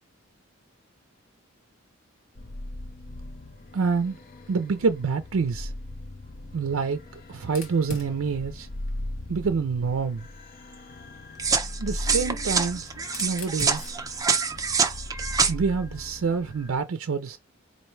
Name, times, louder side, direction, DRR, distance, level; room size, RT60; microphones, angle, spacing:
sound 1, 2.4-16.8, left 1 dB, 40° left, 0.6 m, -39 dB
voice 1, 3.7-4.2 4.5-5.7 6.5-7.0 7.3-8.7 9.3-10.3 11.8-12.9 13.2-13.9 15.5-17.4, right 5 dB, 70° right, 0.4 m, -27 dB
Fire, 7.4-10.2 11.3-15.6, left 1 dB, 70° left, 1.2 m, -44 dB
sound 2, 11.4-15.5, right 5 dB, 15° right, 0.5 m, -26 dB
4.5 x 2.5 x 3.1 m
head